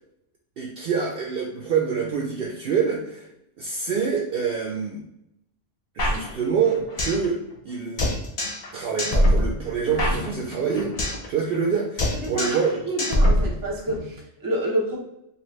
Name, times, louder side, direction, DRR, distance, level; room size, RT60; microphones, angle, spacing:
voice 1, 0.6-3.3 3.6-5.0 6.0-7.4 7.6-8.1 8.7-10.9 11.3-12.8, right 6 dB, 60° right, -1 dB, 0.6 m, -26 dB
sound 1, 6.0-7.3 7.5-7.6 8.0-8.7 9.0-11.3 11.5-11.7 12.0-12.7 13.0-14.0, left 1 dB, 45° left, 0.5 m, -23 dB
voice 2, 12.1-12.6 12.8-15.0, right 1 dB, 20° right, -2 dB, 0.6 m, -28 dB
2.8 x 2.4 x 3.1 m, 0.81 s
omnidirectional pair, 1.3 m